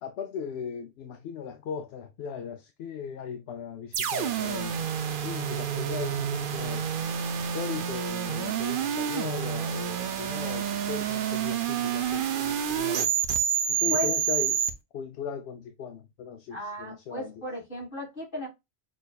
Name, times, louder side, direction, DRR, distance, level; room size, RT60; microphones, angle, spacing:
voice 1, 0.0-4.7 5.2-6.9 7.5-13.1 13.7-14.6 14.9-17.4, left 7 dB, 80° left, 0.8 m, -37 dB
sound 1, 3.9-14.7, right 9 dB, 60° right, 0.7 m, -29 dB
voice 2, 16.5-18.5, equal, 55° left, 3.0 m, -34 dB
6.2 x 2.5 x 2.3 m
omnidirectional pair, 1.0 m